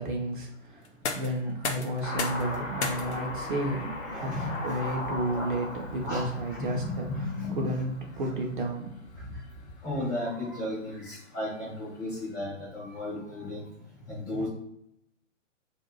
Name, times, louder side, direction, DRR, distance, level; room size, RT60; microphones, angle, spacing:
voice 1, 0.0-9.4, right 1 dB, 40° right, 1 dB, 0.6 m, -32 dB
sound 1, 0.8-12.6, left 4 dB, 60° left, 0.6 m, -42 dB
Car passing by / Accelerating revving vroom, 2.0-8.6, left 1 dB, 85° left, 0.9 m, -38 dB
voice 2, 4.1-4.8 5.3-5.5 6.0-7.8 9.8-13.7 14.1-14.5, left 1 dB, 10° left, -7 dB, 0.5 m, -34 dB
2.5 x 2.2 x 3.0 m, 0.79 s
figure-of-eight pair, 120°, 38 cm